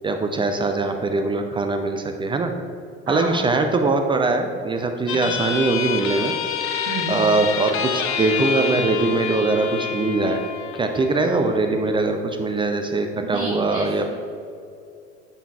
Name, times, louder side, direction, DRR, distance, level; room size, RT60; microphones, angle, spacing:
voice 1, 0.0-2.5 3.1-6.3 7.1-10.4 10.7-14.0, right 3 dB, 15° right, 5 dB, 0.4 m, -22 dB
voice 2, 3.1-3.4 5.1-5.4 6.8-7.3 13.3-14.1, right 1 dB, 40° right, -5 dB, 1.6 m, -31 dB
sound 1, 5.1-12.1, left 7 dB, 40° left, 0.7 m, -28 dB
10.5 x 5.7 x 2.4 m, 2.5 s
figure-of-eight pair, 70°, 34 cm